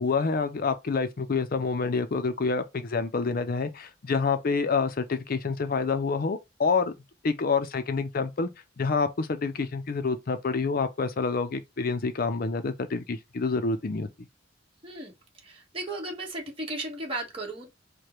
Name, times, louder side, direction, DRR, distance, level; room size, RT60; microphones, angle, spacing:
voice 1, 0.0-6.9 7.2-8.5 8.8-14.1, left 4 dB, 50° left, 0.5 m, -27 dB
voice 2, 15.4-17.7, right 2 dB, 30° right, 1.4 m, -35 dB
4.9 x 2.2 x 4.3 m
head